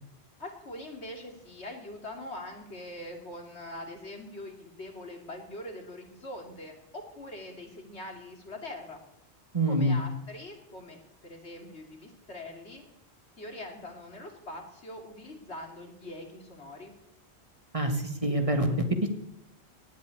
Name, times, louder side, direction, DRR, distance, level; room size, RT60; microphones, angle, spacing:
voice 1, 0.4-9.0 9.7-12.8 13.4-16.9, left 1 dB, 75° left, 3 dB, 3.1 m, -43 dB
voice 2, 9.5-10.0 17.7-19.1, right 1 dB, 30° right, 5 dB, 1.7 m, -26 dB
18.0 x 6.9 x 9.4 m, 0.77 s
omnidirectional pair, 1.1 m